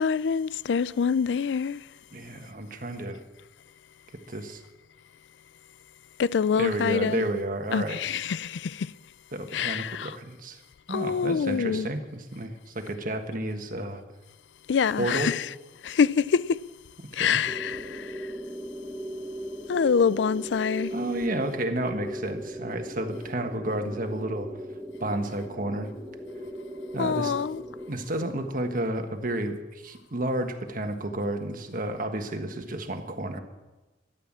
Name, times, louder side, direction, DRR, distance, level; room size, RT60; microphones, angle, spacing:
voice 1, 0.0-1.8 6.2-7.2 7.7-8.9 9.5-10.1 10.9-11.9 14.7-15.5 15.8-16.6 17.1-18.3 19.7-20.9 27.0-27.6, left 6 dB, 75° left, 0.4 m, -25 dB
voice 2, 2.1-3.2 4.1-4.6 6.5-8.0 9.3-10.6 10.9-14.0 15.0-15.4 17.1-17.4 20.9-24.5 25.0-25.9 26.9-27.4 27.9-33.4, right 1 dB, 50° right, 1.5 m, -31 dB
sound 1, 17.4-27.9, equal, 5° right, 0.9 m, -38 dB
13.0 x 11.5 x 7.4 m
head